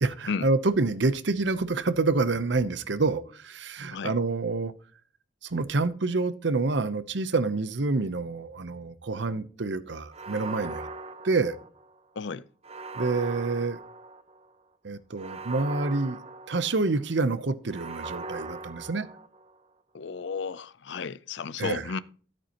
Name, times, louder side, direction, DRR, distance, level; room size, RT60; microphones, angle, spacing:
voice 1, 0.0-4.7 5.4-10.9 11.2-11.6 12.9-13.8 14.8-16.2 16.5-19.1 21.6-21.8, right 3 dB, 65° right, 0.8 m, -27 dB
sound 1, 10.1-12.0 12.6-14.5 15.2-17.0 17.7-19.6, right 3 dB, 35° right, 0.7 m, -40 dB
voice 2, 19.9-22.0, left 5 dB, 65° left, 0.5 m, -33 dB
13.0 x 8.8 x 3.0 m
head